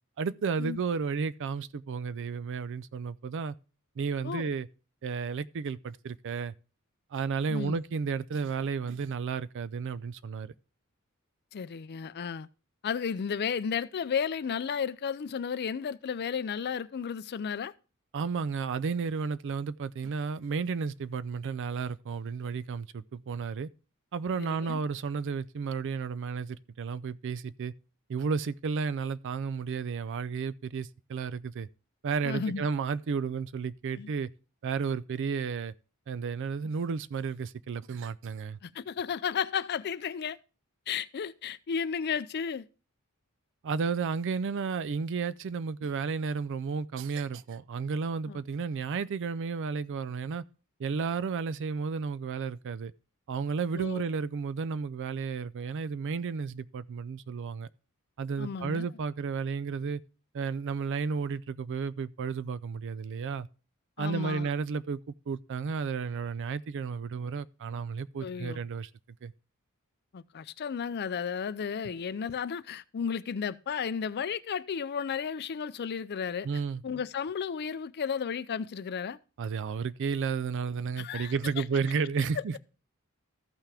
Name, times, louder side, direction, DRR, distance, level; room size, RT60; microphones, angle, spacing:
voice 1, 0.2-3.5 4.0-4.7 5.0-6.5 7.1-10.5 18.1-23.7 24.1-27.7 28.1-31.7 32.0-34.3 34.6-35.7 36.1-38.6 43.6-50.4 50.8-52.9 53.3-57.7 58.2-60.0 60.3-63.5 64.0-65.0 65.3-68.9 69.2-69.3 76.4-76.8 79.4-82.6, right 5 dB, 55° right, 0.4 m, -32 dB
voice 2, 7.5-7.8 11.5-12.5 12.8-17.7 24.4-24.8 32.2-32.6 33.9-34.1 38.6-40.4 40.9-42.6 48.3-48.4 53.7-54.0 58.4-58.9 64.0-64.5 68.2-68.6 70.1-76.5 76.8-79.2 81.0-81.6 82.4-82.5, left 6 dB, 50° left, 0.4 m, -33 dB
14.0 x 5.7 x 3.4 m
head